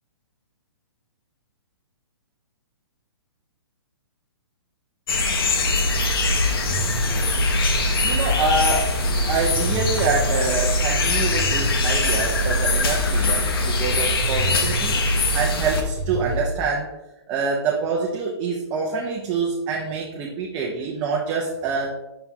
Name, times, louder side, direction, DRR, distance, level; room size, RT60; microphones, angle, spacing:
sound 1, 5.1-15.8, left 3 dB, 55° left, 0.9 m, -23 dB
sound 2, 5.6-16.5, right 2 dB, 60° right, 1.1 m, -27 dB
voice 1, 7.0-7.4 8.0-9.0 9.3-15.0 15.3-16.9 17.3-22.0, right 4 dB, 15° right, -2 dB, 0.4 m, -26 dB
5.9 x 5.7 x 2.8 m, 0.98 s
hypercardioid pair, 165°, 15 cm